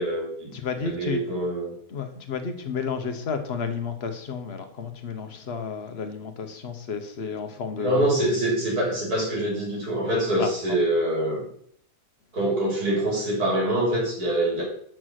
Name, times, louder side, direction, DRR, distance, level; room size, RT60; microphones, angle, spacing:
voice 1, 0.0-0.5 0.8-1.7 7.8-11.4 12.3-14.6, right 1 dB, 70° right, -3 dB, 4.2 m, -25 dB
voice 2, 0.5-1.2 1.9-8.2 10.4-10.8, left 6 dB, 45° left, 7 dB, 1.1 m, -32 dB
6.1 x 6.1 x 6.3 m, 0.63 s
omnidirectional pair, 1.7 m